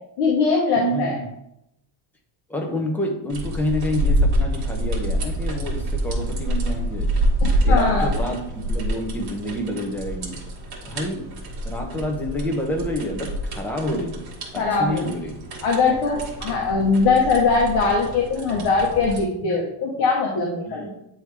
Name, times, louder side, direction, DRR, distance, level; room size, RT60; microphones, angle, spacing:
voice 1, 0.2-1.1 7.4-8.1 14.5-15.1 15.6-20.8, left 4 dB, 60° left, -2 dB, 1.3 m, -21 dB
voice 2, 0.8-1.3 2.5-7.1 7.6-10.4 10.9-11.3 11.6-14.3 14.5-15.5 20.7-20.9, equal, 5° left, 1 dB, 0.5 m, -28 dB
sound 1, 3.3-19.2, equal, 45° right, 1.5 m, -26 dB
9.2 x 3.3 x 3.2 m, 0.80 s
cardioid pair, 175°, 49 cm